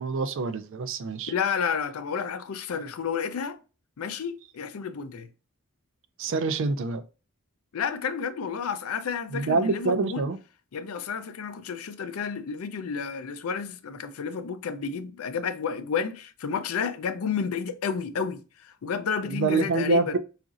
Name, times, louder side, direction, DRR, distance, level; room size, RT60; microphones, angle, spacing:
voice 1, 0.0-1.3 6.2-7.0 9.3-10.4 19.3-20.2, right 4 dB, 60° right, 0.4 m, -26 dB
voice 2, 1.3-3.6 4.0-5.3 7.7-10.3 10.7-20.2, left 6 dB, 85° left, 0.4 m, -31 dB
4.0 x 2.5 x 2.4 m
head